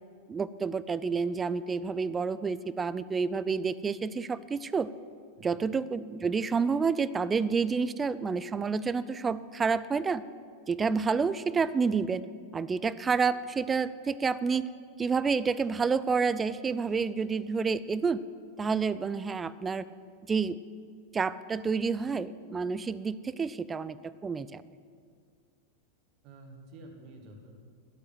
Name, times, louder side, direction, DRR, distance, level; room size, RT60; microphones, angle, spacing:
voice 1, 0.3-4.9 5.4-10.2 10.7-12.2 12.5-14.7 15.0-18.2 18.6-19.8 20.3-20.6 21.1-24.6, right 5 dB, 15° right, 16 dB, 0.4 m, -29 dB
voice 2, 5.4-5.7 26.2-27.6, right 1 dB, 40° right, 3 dB, 1.9 m, -50 dB
12.0 x 8.5 x 8.0 m, 2.1 s
figure-of-eight pair, 90°, 0 cm